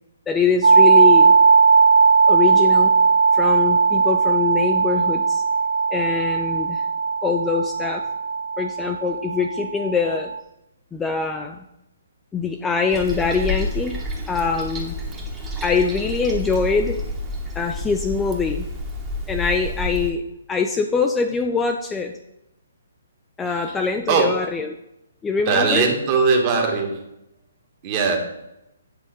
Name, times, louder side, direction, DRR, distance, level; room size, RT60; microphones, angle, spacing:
voice 1, 0.3-1.3 2.3-2.9 3.3-5.4 5.9-6.8 7.2-8.0 8.6-10.3 10.9-11.6 12.3-14.0 14.3-14.9 15.6-17.0 17.5-18.7 19.3-20.2 20.5-22.1 23.4-24.7 25.2-25.8, left 5 dB, 10° left, 4 dB, 0.4 m, -23 dB
sound 1, 0.6-10.4, right 5 dB, 70° right, 0.4 m, -17 dB
Toilet flush, 12.9-20.1, left 1 dB, 15° right, 1.1 m, -29 dB
voice 2, 25.5-27.0 27.8-28.2, right 4 dB, 30° right, 2 dB, 1.4 m, -19 dB
8.3 x 3.7 x 5.3 m, 0.86 s
hypercardioid pair, 155°, 0 cm